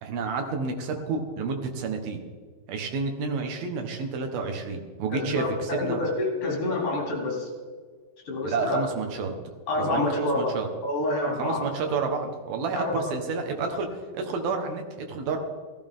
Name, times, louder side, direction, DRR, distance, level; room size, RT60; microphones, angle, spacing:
voice 1, 0.0-2.2 2.7-6.0 8.4-9.3 9.8-10.7 11.4-13.9 14.1-15.4, right 4 dB, 70° right, 4 dB, 3.2 m, -30 dB
voice 2, 5.1-7.5 8.3-8.8 9.7-10.6 10.8-11.6 12.7-12.9, left 2 dB, 50° left, -1 dB, 4.9 m, -27 dB
16.5 x 15.0 x 3.7 m, 1.5 s
omnidirectional pair, 4.6 m